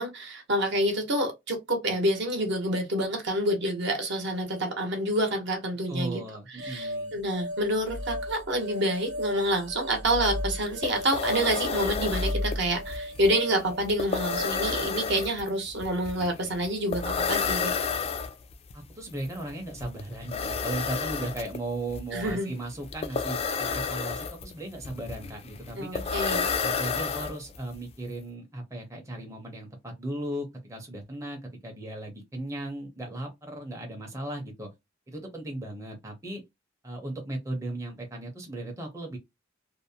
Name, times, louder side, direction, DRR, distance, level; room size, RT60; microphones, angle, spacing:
voice 1, 0.0-6.2 6.6-17.7 22.1-22.5 25.8-26.5, right 1 dB, 60° right, 0.8 m, -28 dB
voice 2, 5.9-7.1 18.7-26.1 26.6-34.7 35.1-36.4 36.8-39.2, right 1 dB, 15° right, 0.6 m, -36 dB
sound 1, 6.6-14.8, left 1 dB, 90° right, 0.8 m, -35 dB
sound 2, 10.4-10.5 10.7-27.7, left 5 dB, 30° left, 0.3 m, -32 dB
2.5 x 2.0 x 2.7 m
head